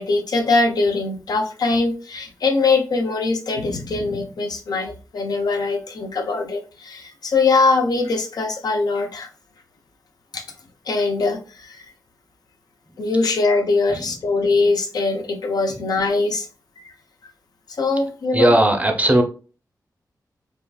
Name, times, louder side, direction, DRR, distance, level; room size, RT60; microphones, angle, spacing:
voice 1, 0.0-9.3 10.3-10.4 10.9-11.9 13.0-16.5 16.8-16.9 17.8-18.5, left 3 dB, 75° left, 4 dB, 0.6 m, -22 dB
voice 2, 18.3-19.2, right 1 dB, 20° right, 4 dB, 0.6 m, -17 dB
3.5 x 2.4 x 2.3 m, 0.37 s
wide cardioid pair, 110°, 7 cm